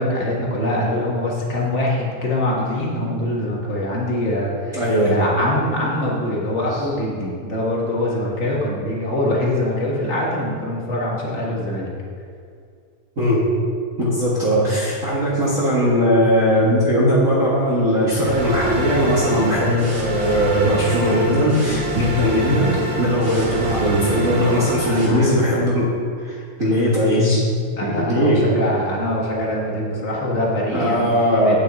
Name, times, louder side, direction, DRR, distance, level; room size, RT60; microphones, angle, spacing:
voice 1, 0.0-4.8 5.1-11.9 24.8-25.6 27.8-31.1 31.4-31.6, left 1 dB, 35° left, -4 dB, 1.2 m, -23 dB
voice 2, 4.7-5.2 13.2-13.5 14.0-27.5 27.8-28.4 30.7-31.6, equal, 35° right, -7 dB, 1.4 m, -19 dB
sound 1, 18.2-25.1, right 2 dB, 55° right, 2.7 m, -27 dB
9.3 x 7.5 x 4.2 m, 2.2 s
omnidirectional pair, 3.4 m